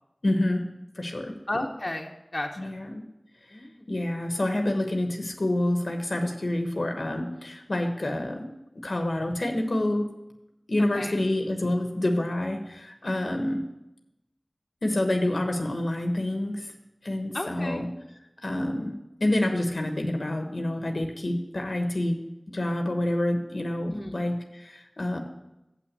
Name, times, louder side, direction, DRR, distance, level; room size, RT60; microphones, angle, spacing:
voice 1, 0.2-0.6 0.9-1.3 2.6-3.1 3.5-8.5 8.7-10.1 10.7-13.6 14.8-16.7 17.0-17.9 18.4-18.9 19.2-22.2 22.5-25.2, left 1 dB, 75° left, 4 dB, 1.0 m, -28 dB
voice 2, 1.5-2.7 3.5-3.7 10.8-11.2 17.3-17.9 23.9-24.1, left 1 dB, 50° left, 1 dB, 0.9 m, -33 dB
7.6 x 6.0 x 6.6 m, 0.90 s
wide cardioid pair, 50°, 0 cm